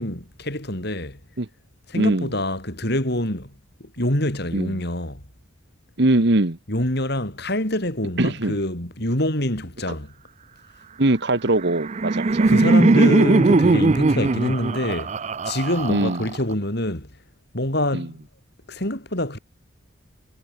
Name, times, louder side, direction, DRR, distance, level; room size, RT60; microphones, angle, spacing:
voice 1, 0.0-1.2 1.9-3.5 3.8-5.2 6.7-10.1 12.4-15.1 15.4-17.1 17.5-18.2 18.7-19.4, left 1 dB, 55° left, 5.8 m, -25 dB
voice 2, 1.9-2.3 4.5-4.8 6.0-6.6 8.2-8.6 11.0-12.5 15.9-16.3 17.9-18.1, right 2 dB, 60° right, 1.5 m, -21 dB
Laughter, 11.5-16.5, right 3 dB, 35° right, 0.5 m, -19 dB
head